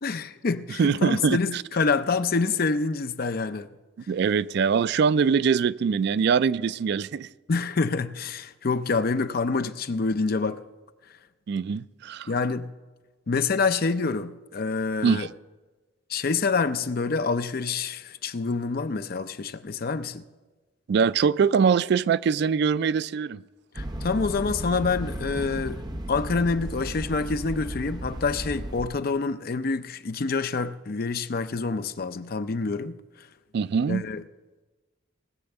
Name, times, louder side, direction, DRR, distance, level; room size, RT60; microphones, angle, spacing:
voice 1, 0.0-3.7 7.5-10.6 12.3-12.7 13.3-15.3 16.1-20.2 23.7-25.8 26.1-33.0 33.9-34.2, left 4 dB, 50° left, 0.5 m, -27 dB
voice 2, 0.8-1.6 4.1-7.3 11.5-12.3 15.0-15.3 20.9-23.4 33.5-34.0, right 6 dB, 60° right, 0.3 m, -23 dB
sound 1, 23.7-28.9, right 1 dB, 20° right, 0.6 m, -34 dB
18.5 x 7.0 x 6.6 m
head